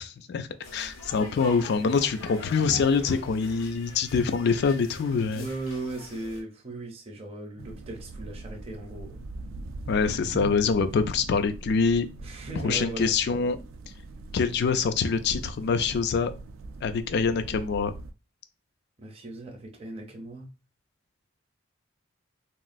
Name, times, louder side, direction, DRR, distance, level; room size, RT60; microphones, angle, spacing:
voice 1, 0.0-5.5 9.9-12.1 12.6-13.6 14.3-16.3 16.8-17.9, left 5 dB, 55° left, 10 dB, 0.3 m, -25 dB
sound 1, 0.6-6.4, left 2 dB, 80° left, 0.8 m, -43 dB
voice 2, 5.2-9.2 12.2-13.1 19.0-20.5, right 2 dB, 30° right, 1 dB, 0.6 m, -37 dB
sound 2, 7.6-18.1, right 2 dB, 75° right, 0.3 m, -41 dB
3.0 x 2.3 x 2.5 m, 0.30 s
head